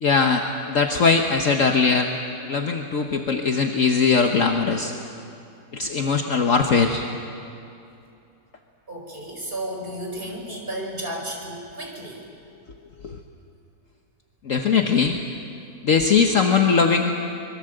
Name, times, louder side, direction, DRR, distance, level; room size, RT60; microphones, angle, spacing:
voice 1, 0.0-2.1 2.5-4.9 5.7-7.1 13.0-13.2 14.4-15.2 15.8-17.3, left 5 dB, 55° left, 4 dB, 1.4 m, -20 dB
voice 2, 8.9-12.2, right 1 dB, 35° right, 0 dB, 4.6 m, -33 dB
25.0 x 22.0 x 7.9 m, 2.7 s
omnidirectional pair, 1.7 m